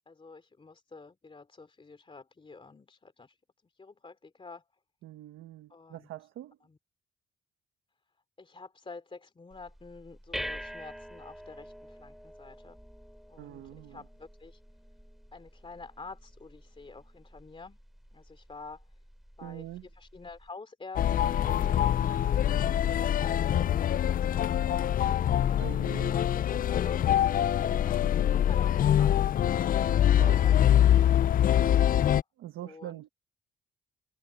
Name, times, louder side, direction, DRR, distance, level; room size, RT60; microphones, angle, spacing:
voice 1, 0.1-3.4 3.6-4.7 5.7-6.1 6.6-6.8 8.4-12.8 13.3-14.6 15.3-17.8 18.1-18.9 19.4-29.3 32.0-32.2 32.6-33.0, left 4 dB, 25° left, 2.9 m, -48 dB
voice 2, 5.0-6.6 13.4-14.0 19.4-19.9 25.5-26.2 30.1-30.4 32.4-33.1, right 13 dB, 85° right, 1.5 m, -43 dB
sound 1, 9.5-20.5, equal, ahead, 2.8 m, -46 dB
sound 2, 21.0-32.2, left 10 dB, 45° left, 0.4 m, -24 dB
cardioid pair, 90°, 20 cm